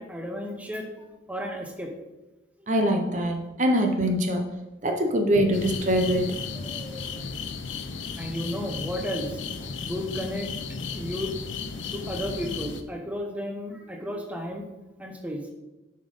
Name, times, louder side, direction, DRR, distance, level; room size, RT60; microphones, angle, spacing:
voice 1, 0.0-1.9 2.6-2.7 5.0-5.1 6.5-7.2 8.2-9.4 9.8-11.3 11.9-14.7 15.0-15.5, equal, 5° right, 3 dB, 0.9 m, -34 dB
voice 2, 2.7-4.5 4.8-6.3, equal, 40° right, 4 dB, 0.7 m, -23 dB
sound 1, 5.5-12.8, left 5 dB, 85° left, 0.7 m, -34 dB
7.6 x 5.3 x 5.4 m, 1.0 s
head